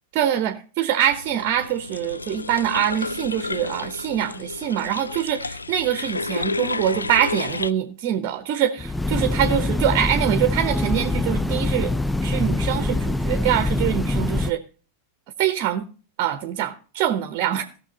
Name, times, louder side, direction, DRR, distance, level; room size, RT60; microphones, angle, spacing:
voice 1, 0.1-11.9 12.2-14.6 15.4-15.8 16.2-17.6, right 10 dB, 40° right, 0.9 m, -24 dB
sound 1, 1.1-7.7, left 3 dB, 80° left, 0.4 m, -31 dB
Train, 8.8-14.5, left 2 dB, 5° left, 0.4 m, -24 dB
17.0 x 6.3 x 4.0 m
figure-of-eight pair, 90°, 0 cm